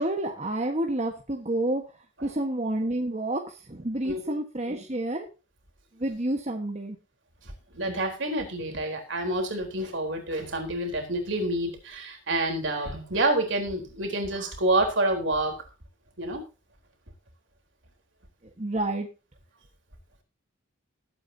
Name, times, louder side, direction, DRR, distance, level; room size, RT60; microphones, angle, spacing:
voice 1, 0.0-1.8 2.2-5.2 6.0-7.0 18.6-19.1, right 1 dB, 35° right, 3 dB, 1.4 m, -29 dB
voice 2, 7.7-15.5 16.2-16.4, right 1 dB, 60° right, 3 dB, 3.9 m, -28 dB
20.0 x 8.9 x 2.8 m, 0.32 s
head